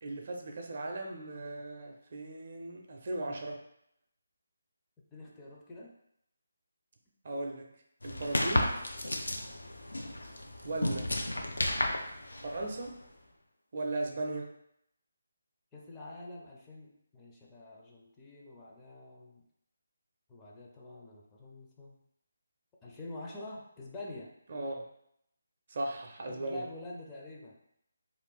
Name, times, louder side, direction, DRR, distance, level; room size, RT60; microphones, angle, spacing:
voice 1, 0.0-3.6 7.2-7.7 8.0-8.8 10.6-11.1 12.4-12.9 13.7-14.5 24.5-24.8 25.7-26.7, right 2 dB, 50° right, 2 dB, 0.5 m, -37 dB
voice 2, 5.1-5.9 15.7-19.4 20.3-21.9 22.8-24.3 26.3-27.6, left 2 dB, 15° left, -4 dB, 0.4 m, -46 dB
sound 1, 8.0-13.0, left 1 dB, 85° left, 0.4 m, -33 dB
2.5 x 2.2 x 3.5 m, 0.76 s
figure-of-eight pair, 155°, 0 cm